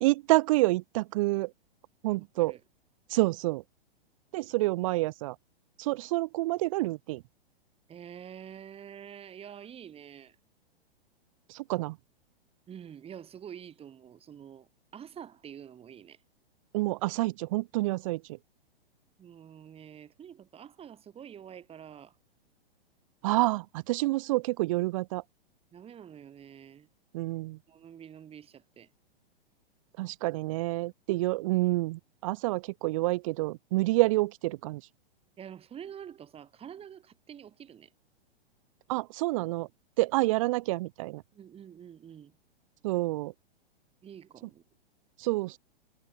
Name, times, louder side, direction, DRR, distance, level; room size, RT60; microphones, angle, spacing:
voice 1, 0.0-1.5 2.0-2.5 3.1-3.6 4.3-5.3 5.8-7.2 11.5-12.0 16.7-18.2 23.2-25.2 27.1-27.6 30.0-34.8 38.9-39.7 40.0-41.2 42.8-43.3 45.2-45.6, right 20 dB, 35° right, 0.4 m, -28 dB
voice 2, 7.9-10.4 12.7-16.2 19.2-22.1 25.7-26.9 27.7-28.9 35.4-37.9 41.3-42.3 44.0-44.6, right 9 dB, 20° right, 2.6 m, -47 dB
hypercardioid pair, 115°, 30 cm